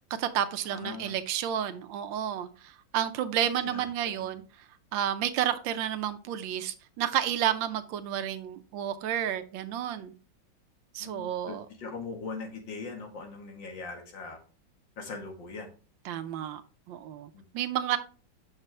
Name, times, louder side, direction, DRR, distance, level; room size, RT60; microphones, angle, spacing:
voice 1, 0.2-4.4 4.9-10.1 10.9-11.7 16.0-16.6 16.9-18.0, right 10 dB, 85° right, 1.4 m, -31 dB
voice 2, 0.7-1.1 3.6-4.4 11.0-14.4 15.0-15.7 17.3-17.4, left 4 dB, 75° left, 2.3 m, -41 dB
6.5 x 6.1 x 3.2 m
omnidirectional pair, 2.0 m